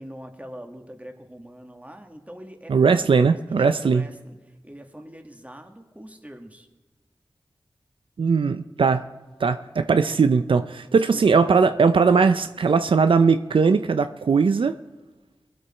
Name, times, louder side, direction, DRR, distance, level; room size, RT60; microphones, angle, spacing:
voice 1, 0.0-6.7 11.1-11.3, equal, 15° right, 4 dB, 1.9 m, -43 dB
voice 2, 2.7-4.0 8.2-9.0 9.4-14.7, right 5 dB, 80° right, 10 dB, 0.5 m, -19 dB
21.0 x 8.2 x 4.4 m, 1.2 s
cardioid pair, 40°, 9 cm